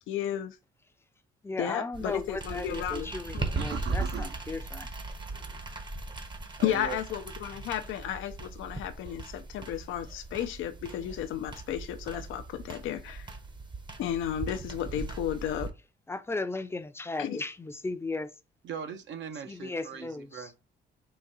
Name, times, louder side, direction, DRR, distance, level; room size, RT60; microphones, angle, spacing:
voice 1, 0.1-0.6 1.6-3.6 6.6-13.3 14.0-15.7 17.2-17.4, left 10 dB, 80° left, 0.5 m, -33 dB
voice 2, 1.4-4.9 16.1-18.3 19.5-20.5, left 3 dB, 10° left, 0.5 m, -36 dB
sound 1, 1.9-15.7, right 3 dB, 25° right, 0.7 m, -38 dB
voice 3, 3.5-4.4 6.6-7.0 18.6-20.6, right 7 dB, 70° right, 0.7 m, -39 dB
3.9 x 2.5 x 4.0 m
cardioid pair, 90°, 20 cm